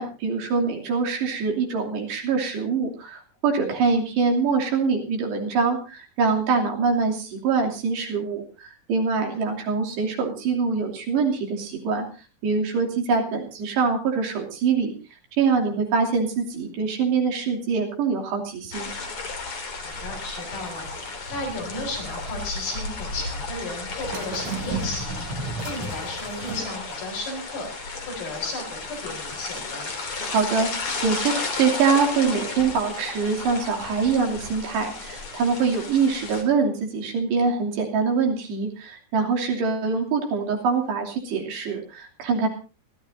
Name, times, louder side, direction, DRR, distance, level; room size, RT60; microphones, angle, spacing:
voice 1, 0.0-12.0 12.4-14.9 15.4-18.9 30.2-30.7 31.0-42.5, right 5 dB, 85° right, 1 dB, 5.0 m, -24 dB
sound 1, 18.7-36.4, left 3 dB, 35° left, 3.5 m, -34 dB
voice 2, 19.8-20.9 21.3-25.2 25.6-27.7 28.1-29.9, left 2 dB, 75° left, 2 dB, 6.5 m, -34 dB
sound 2, 19.9-22.4 24.0-26.8 27.1-27.2, right 3 dB, 45° right, 3.8 m, -35 dB
29.5 x 13.0 x 2.7 m, 0.32 s
omnidirectional pair, 4.7 m